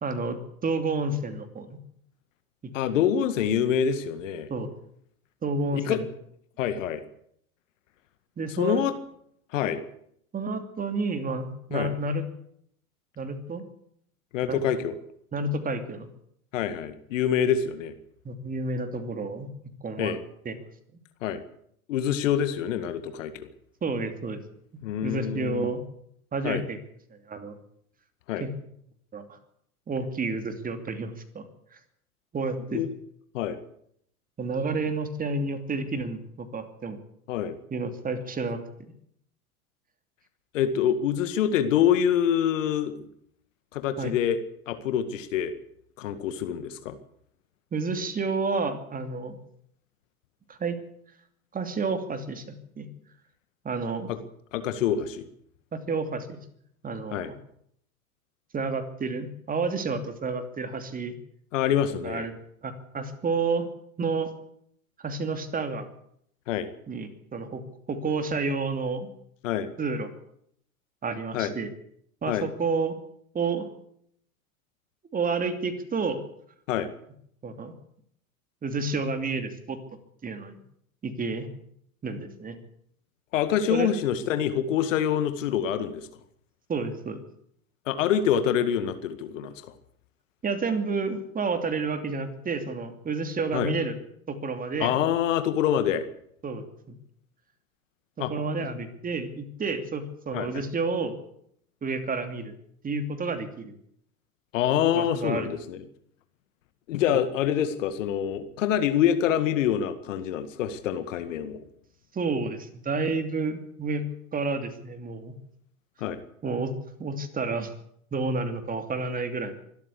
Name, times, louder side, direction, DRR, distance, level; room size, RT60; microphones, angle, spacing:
voice 1, 0.0-1.8 2.6-2.7 4.5-4.7 5.4-6.0 8.4-8.8 10.3-12.2 13.2-13.6 14.5-14.6 15.3-16.1 18.2-19.5 19.8-20.1 20.4-20.5 23.8-24.4 25.0-25.8 26.3-26.8 27.1-27.6 28.4-28.5 29.1-29.4 29.9-31.5 32.3-32.8 34.4-37.0 37.7-38.9 44.0-44.1 47.7-49.4 50.5-50.8 51.5-52.9 53.6-54.1 55.7-56.4 56.8-57.3 58.5-61.2 62.0-62.3 62.6-63.7 64.0-64.3 65.0-65.9 66.9-67.6 67.9-69.1 69.8-70.1 71.0-71.7 72.2-72.9 73.3-73.7 75.1-76.2 77.4-77.7 78.6-79.8 80.2-80.5 81.0-81.5 82.0-82.6 83.7-83.9 86.7-87.2 90.4-93.9 94.3-94.9 96.4-96.9 98.2-101.2 101.8-102.5 102.8-103.7 104.9-105.5 107.1-107.2 112.1-115.3 116.4-116.7 117.0-117.7 118.1-119.5, right 3 dB, 20° right, 9 dB, 2.8 m, -30 dB
voice 2, 2.7-4.5 5.7-6.0 6.6-7.0 8.5-8.9 9.5-9.8 11.7-11.9 14.3-14.9 16.5-17.9 20.0-20.2 21.2-21.4 21.9-23.5 24.8-25.7 26.4-26.6 28.3-28.4 32.7-32.9 33.3-33.6 34.6-34.7 37.3-37.6 40.5-43.1 43.7-44.4 44.7-45.5 46.0-46.9 54.1-54.2 54.5-55.3 57.1-57.3 61.5-62.3 66.5-66.7 69.4-69.7 71.3-71.5 72.3-72.5 76.7-76.9 83.3-86.1 87.9-89.7 93.5-93.7 94.8-96.1 98.2-98.3 100.3-100.5 104.5-105.8 106.9-111.6 116.0-116.2, left 9 dB, 60° left, 11 dB, 2.1 m, -26 dB
24.0 x 13.0 x 8.4 m, 0.70 s
figure-of-eight pair, 90°, 44 cm